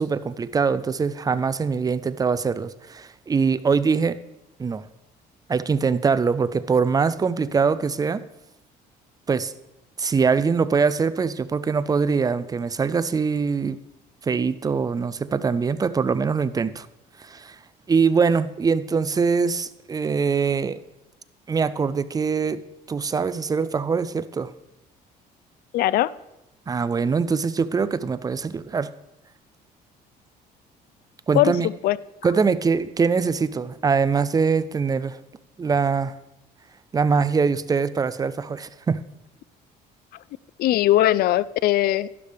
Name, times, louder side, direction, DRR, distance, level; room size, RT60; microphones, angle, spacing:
voice 1, 0.0-4.2 4.6-4.8 5.5-8.2 9.3-9.5 10.0-13.8 14.2-16.9 17.2-17.6 17.9-20.8 21.5-22.6 22.9-24.5 26.7-28.9 31.3-31.7 32.2-35.2 35.6-36.1 36.9-39.0, right 5 dB, 20° right, 15 dB, 0.4 m, -23 dB
voice 2, 25.7-26.1 31.3-32.0 40.6-42.1, left 14 dB, 65° left, 20 dB, 0.4 m, -20 dB
12.0 x 11.5 x 3.4 m, 0.91 s
cardioid pair, 110°, 17 cm